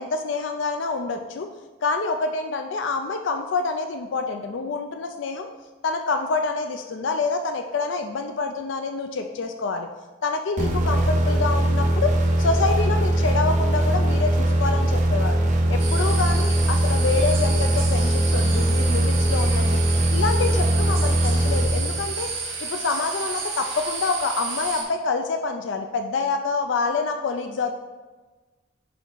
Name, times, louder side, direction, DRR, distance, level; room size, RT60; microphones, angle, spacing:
voice 1, 0.0-1.5 1.8-5.5 5.8-9.9 10.2-12.1 12.4-15.4 15.7-19.8 20.1-22.3 22.6-27.7, left 4 dB, 65° left, 6 dB, 0.4 m, -27 dB
sound 1, 10.6-22.3, right 1 dB, 40° right, 0.8 m, -21 dB
sound 2, 15.8-24.8, right 5 dB, 90° right, 2.2 m, -31 dB
10.0 x 3.6 x 3.8 m, 1.3 s
head